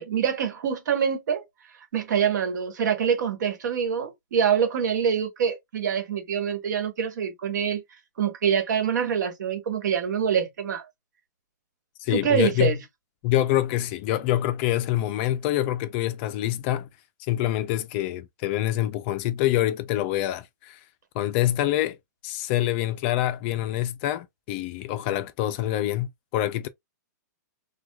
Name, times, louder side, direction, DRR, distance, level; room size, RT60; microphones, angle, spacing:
voice 1, 0.0-1.4 1.9-7.8 8.2-10.8 12.1-12.8, right 8 dB, 75° right, 1.2 m, -25 dB
voice 2, 12.0-12.8 13.2-16.9 17.3-20.8 21.1-22.0 22.2-26.7, left 13 dB, 40° left, 0.4 m, -26 dB
4.6 x 2.2 x 2.2 m
hypercardioid pair, 145°, 10 cm